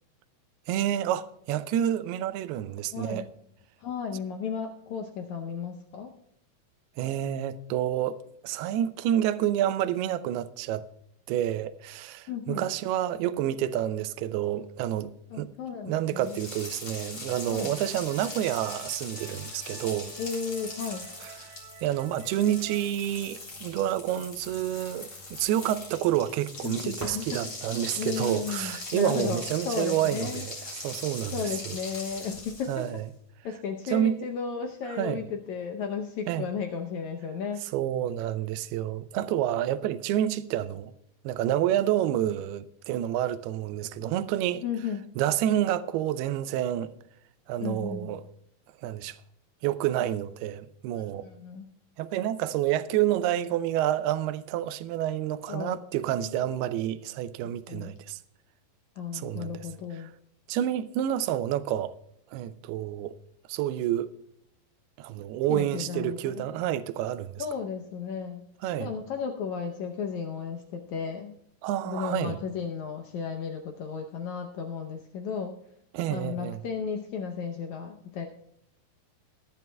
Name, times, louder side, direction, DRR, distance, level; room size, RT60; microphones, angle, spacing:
voice 1, 0.7-3.2 7.0-8.2 8.4-10.9 11.3-15.5 15.9-20.1 21.8-31.8 32.7-33.0 33.9-34.2 35.0-35.2 36.3-36.5 37.7-40.9 41.2-44.6 45.2-46.9 47.5-48.3 48.8-49.2 49.6-51.3 52.0-58.2 59.1-59.6 60.5-61.9 62.3-63.1 63.5-64.1 65.0-67.5 68.6-68.9 71.6-72.4 75.9-76.6, right 11 dB, 85° right, 2.6 m, -29 dB
voice 2, 2.9-3.3 3.8-6.1 12.3-12.6 15.3-16.4 17.5-17.7 20.2-21.1 26.6-27.4 28.0-30.4 31.3-33.0 33.4-37.7 44.6-45.1 47.6-48.1 50.9-51.7 55.5-55.8 56.2-56.5 57.7-57.9 59.0-60.1 65.5-66.5 67.4-68.4 68.8-71.4 71.8-75.6 76.1-78.3, left 6 dB, 80° left, 1.6 m, -34 dB
sound 1, 16.2-33.0, left 2 dB, 35° left, 4.0 m, -41 dB
sound 2, 17.3-22.9, right 6 dB, 65° right, 2.8 m, -51 dB
20.0 x 10.5 x 2.3 m
omnidirectional pair, 4.5 m